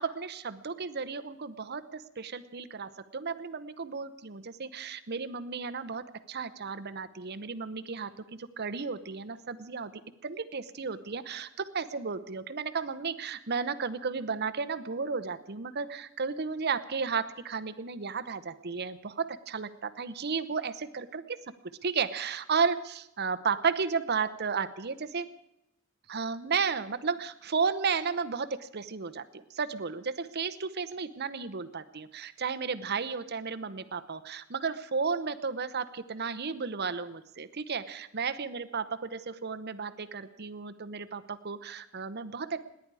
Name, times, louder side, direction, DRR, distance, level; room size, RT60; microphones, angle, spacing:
voice 1, 0.0-9.9 10.2-21.4 21.8-25.3 26.1-42.6, right 5 dB, 50° right, 11 dB, 0.9 m, -33 dB
28.0 x 10.5 x 4.8 m, 0.84 s
head